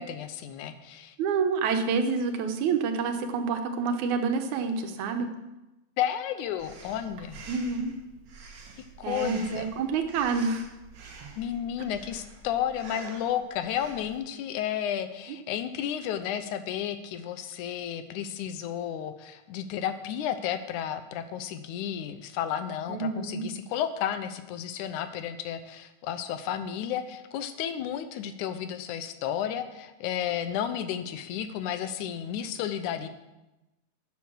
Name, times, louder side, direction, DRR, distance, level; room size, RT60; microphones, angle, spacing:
voice 1, 0.0-1.2 6.0-7.4 9.0-9.7 11.4-33.1, left 9 dB, 90° left, 11 dB, 2.3 m, -32 dB
voice 2, 1.2-5.3 7.5-7.9 9.0-10.6 22.9-23.5, right 5 dB, 80° right, 6 dB, 2.4 m, -28 dB
Breathing, 6.6-14.2, right 3 dB, 50° right, 1.5 m, -47 dB
11.5 x 7.6 x 6.2 m, 1.0 s
omnidirectional pair, 3.4 m